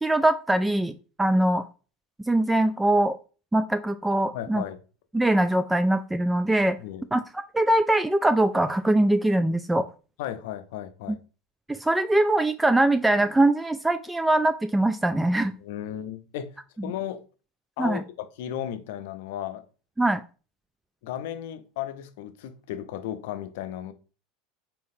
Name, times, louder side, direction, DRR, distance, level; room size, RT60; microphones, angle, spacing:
voice 1, 0.0-0.9 1.2-1.6 2.2-3.2 3.5-4.6 5.1-6.8 7.1-7.2 7.5-9.8 11.7-15.5 17.8-18.0 20.0-20.2, right 1 dB, 10° right, 0.3 m, -22 dB
voice 2, 4.3-4.8 6.8-7.0 10.2-11.2 15.6-16.6 16.8-17.2 17.8-19.6 21.0-23.9, left 11 dB, 70° left, 0.5 m, -35 dB
4.1 x 3.9 x 2.6 m
hypercardioid pair, 85°, 0 cm